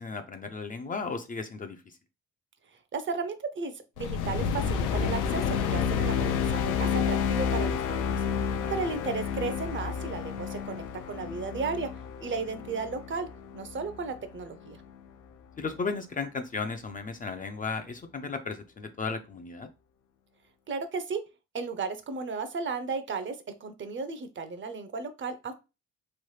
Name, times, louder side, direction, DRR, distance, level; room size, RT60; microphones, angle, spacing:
voice 1, 0.0-2.0 8.5-8.7 15.6-19.7, left 4 dB, 30° left, 6 dB, 0.4 m, -35 dB
voice 2, 2.9-11.9 12.2-13.3 13.5-14.8 20.7-21.2 21.5-25.5, right 4 dB, 40° right, 9 dB, 0.5 m, -34 dB
sound 1, 4.0-14.4, left 7 dB, 90° left, 0.5 m, -30 dB
3.1 x 2.0 x 3.2 m, 0.27 s
cardioid pair, 90°, 30 cm